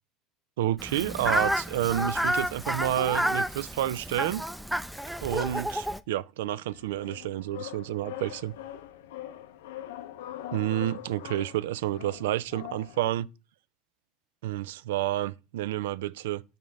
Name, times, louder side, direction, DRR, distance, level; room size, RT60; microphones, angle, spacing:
voice 1, 0.6-4.4 5.2-8.5 10.5-13.3 14.4-16.4, right 13 dB, 90° right, 0.3 m, -30 dB
Fowl, 0.8-6.0, equal, ahead, 0.4 m, -30 dB
sound 1, 6.7-13.1, left 12 dB, 90° left, 0.5 m, -42 dB
5.7 x 3.5 x 5.2 m
supercardioid pair, 95°, 0 cm